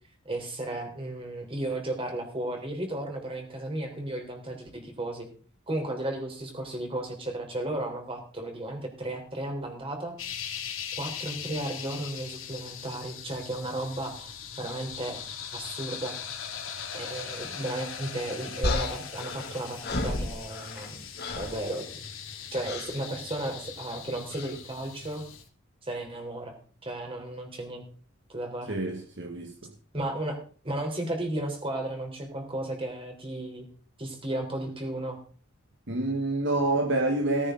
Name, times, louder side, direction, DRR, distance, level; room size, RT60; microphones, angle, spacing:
voice 1, 0.3-5.3 5.7-10.2 11.0-15.2 15.5-16.2 16.9-21.1 21.4-21.8 22.5-25.2 25.8-26.5 26.8-27.9 28.3-28.7 29.9-30.4 30.6-33.7 34.0-35.2, right 1 dB, 25° right, 3.9 m, -34 dB
sound 1, 10.2-25.4, left 7 dB, 70° left, 2.8 m, -40 dB
sound 2, 18.6-20.9 21.2-21.6 22.6-23.0 24.3-24.6, left 2 dB, 50° left, 2.4 m, -32 dB
voice 2, 28.7-29.7 35.9-37.5, right 2 dB, 60° right, 1.4 m, -27 dB
18.0 x 9.9 x 3.9 m
head